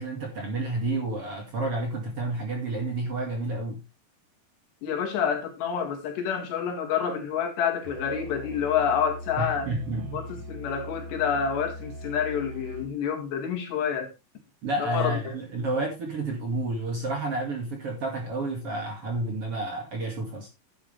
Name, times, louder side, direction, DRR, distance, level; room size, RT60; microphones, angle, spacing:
voice 1, 0.0-3.8 9.4-10.2 14.6-20.5, right 2 dB, 40° right, 2.6 m, -30 dB
voice 2, 4.8-9.7 10.1-14.1 14.8-15.3, left 7 dB, 75° left, 4.2 m, -28 dB
Musical instrument, 7.8-13.0, left 1 dB, 75° right, 5.4 m, -40 dB
11.5 x 9.6 x 3.3 m
omnidirectional pair, 5.0 m